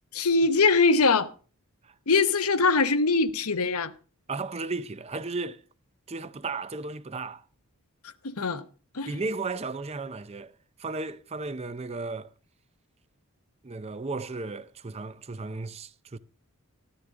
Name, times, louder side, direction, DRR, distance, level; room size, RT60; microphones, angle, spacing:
voice 1, 0.1-1.3 2.1-3.9 8.2-8.6 8.9-9.1, left 4 dB, 80° left, 0.9 m, -22 dB
voice 2, 4.3-5.6 6.1-7.4 9.1-10.5 10.8-12.3 13.6-16.2, right 3 dB, 30° right, 0.5 m, -34 dB
13.0 x 13.0 x 3.7 m
head